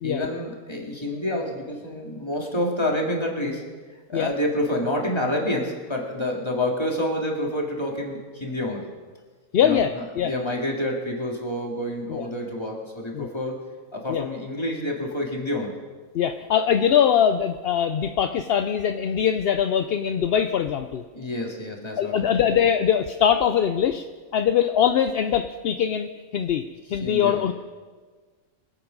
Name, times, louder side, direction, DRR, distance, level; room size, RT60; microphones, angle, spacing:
voice 1, 0.0-3.6 4.1-8.9 9.6-13.6 13.9-15.8 21.1-22.4 27.0-27.5, left 1 dB, 20° left, -1 dB, 2.4 m, -28 dB
voice 2, 9.5-10.3 12.1-12.3 13.2-13.3 14.1-14.2 16.1-21.0 22.0-24.0 24.3-26.6 26.9-27.5, left 8 dB, 60° left, 8 dB, 0.7 m, -22 dB
24.0 x 8.8 x 5.3 m, 1.4 s
omnidirectional pair, 1.4 m